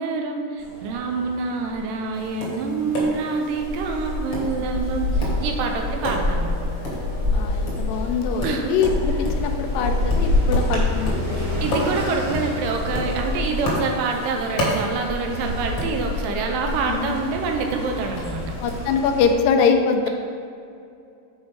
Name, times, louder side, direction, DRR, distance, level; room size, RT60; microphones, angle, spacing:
voice 1, 0.0-6.5 8.4-8.7 11.6-18.5, right 4 dB, 80° right, 3 dB, 2.3 m, -26 dB
sound 1, 0.6-19.3, left 1 dB, 50° right, 0.9 m, -27 dB
Tap, 2.1-18.9, equal, 55° left, 1.4 m, -33 dB
Wind instrument woodwind instrument, 5.1-10.4, left 5 dB, 70° left, 1.8 m, -42 dB
voice 2, 7.1-11.6 16.9-17.2 18.6-20.1, left 6 dB, 90° left, 5 dB, 2.3 m, -23 dB
7.5 x 4.6 x 4.6 m, 2.5 s
omnidirectional pair, 4.0 m